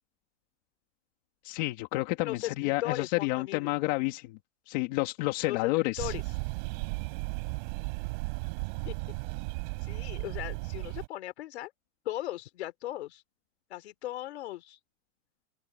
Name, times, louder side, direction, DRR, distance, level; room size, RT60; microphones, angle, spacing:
voice 1, 1.4-4.4 4.7-6.1, left 21 dB, 35° left, 2.5 m, -30 dB
voice 2, 2.2-3.7 5.5-6.2 8.8-9.0 9.8-11.7 12.0-13.2 13.7-14.8, left 15 dB, 60° left, 4.0 m, -37 dB
sound 1, 6.0-11.1, right 30 dB, 40° right, 5.3 m, -35 dB
open air
supercardioid pair, 170°, 38 cm